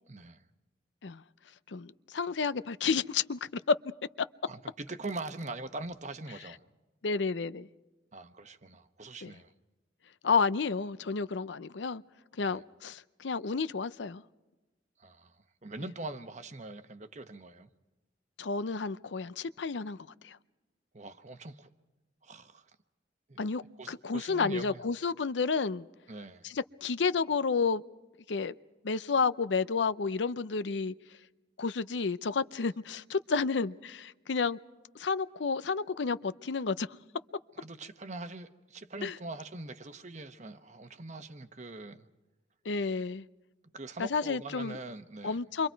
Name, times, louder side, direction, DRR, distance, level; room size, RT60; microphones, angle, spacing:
voice 1, 0.1-0.4 4.5-6.6 8.1-9.5 12.4-12.6 15.0-17.7 20.9-21.7 22.2-22.7 23.3-23.4 23.8-24.8 26.1-26.5 37.6-42.1 43.7-45.4, right 2 dB, 40° right, 1.1 m, -43 dB
voice 2, 1.7-3.8 4.2-4.3 7.0-7.7 9.2-9.3 10.2-12.0 12.4-14.2 18.4-20.0 20.2-20.4 23.4-25.9 26.4-27.8 28.3-28.5 28.8-30.9 31.6-34.6 34.9-36.9 39.0-39.1 42.7-43.2 44.0-44.8 45.2-45.7, left 5 dB, 80° left, 0.6 m, -31 dB
28.0 x 24.5 x 4.6 m
head